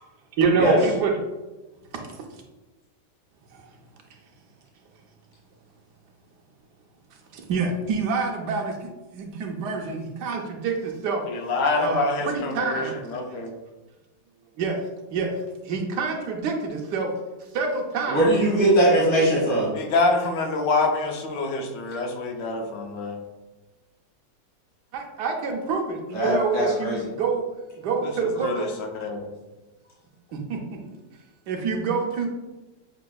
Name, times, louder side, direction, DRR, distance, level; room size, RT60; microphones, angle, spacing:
voice 1, 0.4-1.2 1.9-2.0 3.5-3.7 7.3-11.2 11.8-13.0 14.6-14.8 15.1-15.3 15.6-17.1 17.5-18.2 24.9-27.4 27.8-28.7 30.3-30.6 31.5-32.3, right 4 dB, 75° right, 1 dB, 1.2 m, -26 dB
voice 2, 11.3-13.5 19.7-23.2 28.0-28.1 28.4-29.3, left 3 dB, 85° left, 2 dB, 1.3 m, -26 dB
voice 3, 18.1-19.7 26.1-27.0, right 1 dB, 20° left, -7 dB, 1.4 m, -20 dB
6.6 x 2.7 x 2.3 m, 1.1 s
omnidirectional pair, 1.8 m